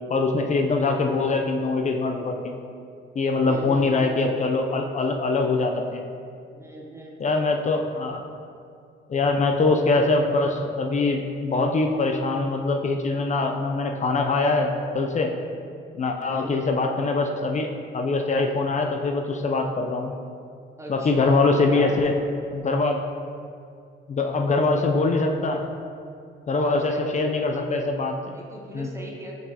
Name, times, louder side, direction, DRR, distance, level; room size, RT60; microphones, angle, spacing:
voice 1, 0.1-2.6 3.1-6.0 7.2-8.2 9.1-15.3 16.0-17.7 17.9-20.1 20.9-22.1 22.5-23.0 24.1-25.6 26.5-28.2 28.7-28.9, left 3 dB, 35° left, 3 dB, 0.5 m, -23 dB
voice 2, 3.4-4.1 6.5-7.8 16.3-16.7 20.8-21.3 21.6-22.1 24.4-24.9 26.5-27.4 28.3-29.3, right 1 dB, 15° right, -2 dB, 0.9 m, -38 dB
5.9 x 5.6 x 2.8 m, 2.4 s
cardioid pair, 90°, 20 cm